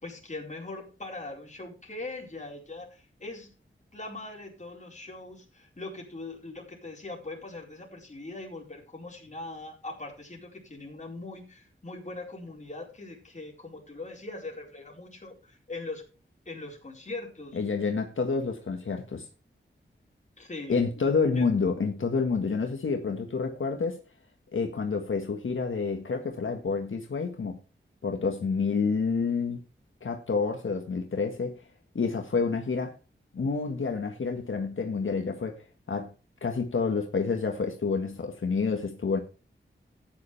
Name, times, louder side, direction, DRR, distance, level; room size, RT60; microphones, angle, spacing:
voice 1, 0.0-3.5 3.9-16.0 16.5-17.6 20.4-20.8 21.4-21.5, left 2 dB, 35° left, 4.4 m, -41 dB
voice 2, 17.5-19.3 20.7-24.0 24.5-27.6 28.0-29.6 30.0-31.6 31.9-33.0 33.3-36.1 36.4-39.2, left 4 dB, 80° left, 1.6 m, -28 dB
13.5 x 9.6 x 3.3 m
wide cardioid pair, 105°, 20 cm